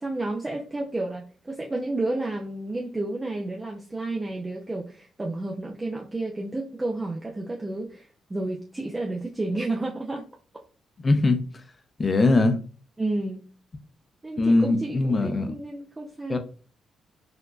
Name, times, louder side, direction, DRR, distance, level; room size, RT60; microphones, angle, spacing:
voice 1, 0.0-10.2 13.0-13.4 14.2-16.4, right 2 dB, 20° right, 0.6 m, -31 dB
voice 2, 11.0-11.4 12.0-12.6 14.4-15.5 16.3-16.4, left 2 dB, 35° left, 0.6 m, -21 dB
3.8 x 2.6 x 2.3 m
hypercardioid pair, 45°, 0 cm